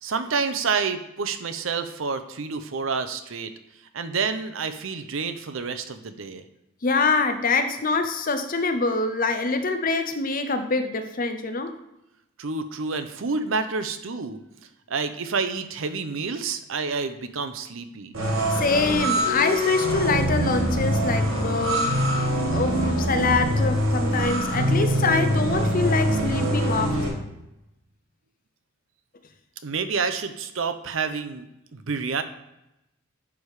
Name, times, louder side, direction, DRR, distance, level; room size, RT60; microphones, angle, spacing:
voice 1, 0.0-3.5 3.9-6.4 12.4-14.4 14.9-18.1 29.6-32.2, right 5 dB, 65° right, 10 dB, 0.6 m, -28 dB
voice 2, 6.8-11.8 18.5-22.0 22.5-27.0, left 3 dB, 45° left, 8 dB, 0.7 m, -25 dB
sound 1, 18.1-27.1, equal, 85° right, 2.1 m, -24 dB
10.5 x 3.6 x 4.8 m, 0.89 s
head